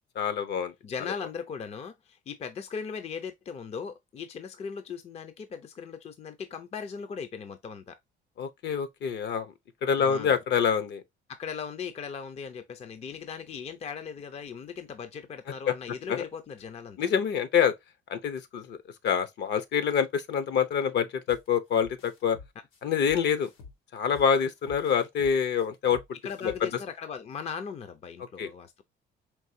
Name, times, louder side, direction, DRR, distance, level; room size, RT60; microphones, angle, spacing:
voice 1, 0.2-0.7 8.4-9.5 9.8-11.0 15.7-15.8 16.1-16.2 17.0-17.7 18.1-18.8 19.0-22.4 22.8-23.5 23.9-26.0 26.4-26.5 28.4-28.5, left 7 dB, 60° left, 0.8 m, -26 dB
voice 2, 0.8-8.0 10.0-10.4 11.3-17.1 26.2-28.8, left 6 dB, 30° left, 0.5 m, -38 dB
sound 1, 21.3-21.5 21.8-24.3 24.7-26.8, left 4 dB, 85° left, 1.2 m, -48 dB
4.6 x 3.0 x 2.7 m
cardioid pair, 130°, 20 cm